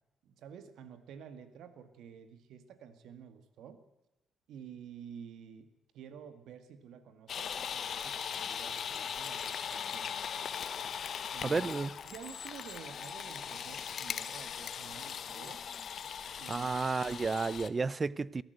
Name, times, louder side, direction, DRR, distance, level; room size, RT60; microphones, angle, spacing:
voice 1, 0.2-3.8 4.5-10.6 11.3-11.7 12.0-15.6 16.4-16.7, right 8 dB, 80° right, 2.0 m, -50 dB
sound 1, 7.3-17.7, left 7 dB, 55° left, 1.2 m, -39 dB
voice 2, 11.4-12.0 16.5-18.4, right 4 dB, 30° right, 0.6 m, -32 dB
23.0 x 14.5 x 8.1 m
cardioid pair, 90°, 0 cm